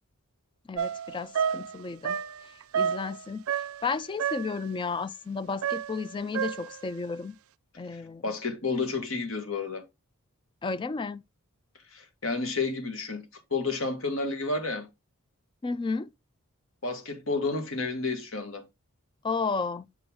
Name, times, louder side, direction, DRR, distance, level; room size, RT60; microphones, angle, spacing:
voice 1, 0.7-2.2 2.8-3.4 3.8-7.4 7.8-8.2 10.6-11.2 15.6-16.1 19.2-19.9, left 4 dB, 20° left, 0.3 m, -32 dB
sound 1, 0.8-3.9 4.2-4.7 5.6-6.8, right 8 dB, 70° right, 0.4 m, -31 dB
voice 2, 7.9-9.8 11.9-13.2 13.5-14.9 16.8-18.6, left 3 dB, 65° left, 1.7 m, -31 dB
6.9 x 5.4 x 3.5 m
head